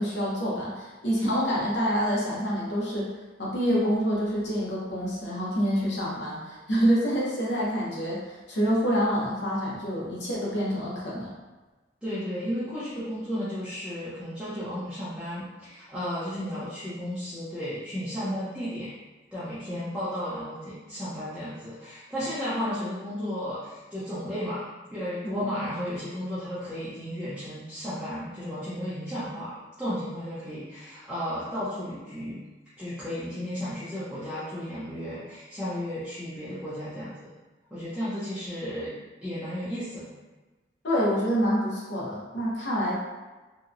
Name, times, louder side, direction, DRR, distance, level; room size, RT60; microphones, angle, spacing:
voice 1, 0.0-3.1 3.4-11.3 25.2-25.4 40.8-42.9, equal, 65° left, -5 dB, 0.8 m, -27 dB
voice 2, 12.0-18.9 19.3-24.6 24.9-32.4 32.8-37.3 37.7-38.9 39.2-40.1, equal, 5° right, -14 dB, 0.5 m, -34 dB
2.8 x 2.1 x 2.5 m, 1.2 s
head